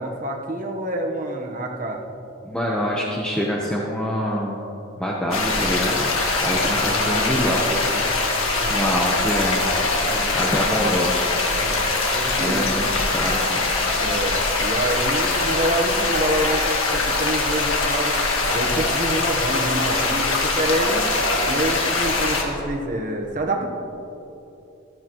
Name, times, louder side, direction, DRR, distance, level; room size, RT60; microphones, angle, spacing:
voice 1, 0.0-2.0 6.5-8.1 8.5-8.8 10.0-10.4 11.5-12.6 14.0-18.2 18.5-21.1 21.5-23.6, right 1 dB, 40° right, 2 dB, 1.0 m, -27 dB
voice 2, 2.4-4.6 5.0-6.1 6.4-7.7 8.7-9.6 10.3-11.2 12.4-13.6, equal, 5° left, -4 dB, 0.9 m, -25 dB
sound 1, 5.3-22.4, left 3 dB, 85° left, 1.7 m, -22 dB
Wind, 8.6-11.2 11.6-11.7 12.4-12.5 12.9-14.6 15.4-16.9 17.5-19.1 20.4-22.5, right 1 dB, 70° left, 2.4 m, -35 dB
14.5 x 14.0 x 3.0 m, 2.9 s
head